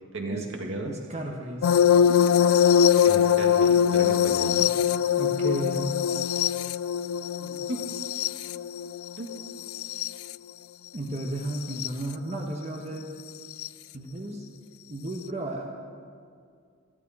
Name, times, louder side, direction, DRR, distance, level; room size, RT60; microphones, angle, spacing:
voice 1, 0.1-0.9 2.1-2.2 3.0-4.7 7.4-8.0 9.2-9.3, right 2 dB, 65° right, 2 dB, 1.9 m, -35 dB
voice 2, 0.8-1.7 5.2-6.0 10.9-13.1 13.9-14.4 14.9-15.7, right 1 dB, 30° right, 0 dB, 1.3 m, -33 dB
sound 1, 1.6-10.3 11.6-11.9 13.6-13.7, left 8 dB, 85° left, 0.3 m, -22 dB
21.5 x 13.5 x 4.3 m, 2.2 s
head